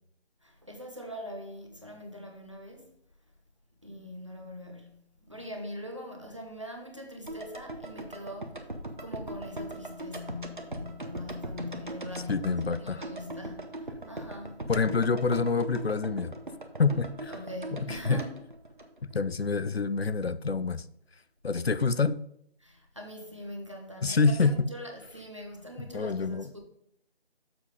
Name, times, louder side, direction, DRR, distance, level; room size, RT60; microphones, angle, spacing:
voice 1, 0.4-2.9 3.8-8.7 9.0-14.6 17.3-18.4 22.6-26.6, left 1 dB, 30° right, 1.1 m, -42 dB
sound 1, 7.3-19.5 19.7-19.8, right 1 dB, 50° right, 1.1 m, -40 dB
voice 2, 12.3-13.0 14.7-16.3 16.8-17.3 17.7-18.2 19.0-20.8 21.4-22.2 24.0-24.7 25.8-26.5, left 4 dB, 70° left, 0.6 m, -27 dB
7.1 x 5.3 x 5.1 m
figure-of-eight pair, 175°, 32 cm